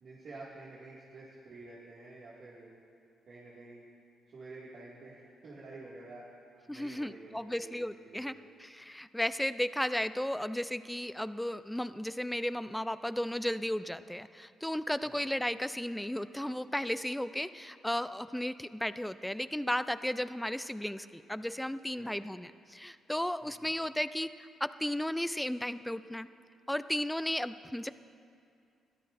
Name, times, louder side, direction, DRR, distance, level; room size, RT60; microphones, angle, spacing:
voice 1, 0.0-2.7 3.3-3.8 4.3-6.2 6.7-8.3 15.0-15.2 22.0-22.2 23.4-23.7, right 2 dB, 55° right, -7 dB, 2.1 m, -49 dB
voice 2, 6.7-8.3 8.6-26.3 26.7-27.9, left 1 dB, 5° left, 13 dB, 0.4 m, -34 dB
21.0 x 13.0 x 2.6 m, 2.4 s
cardioid pair, 90°, 0 cm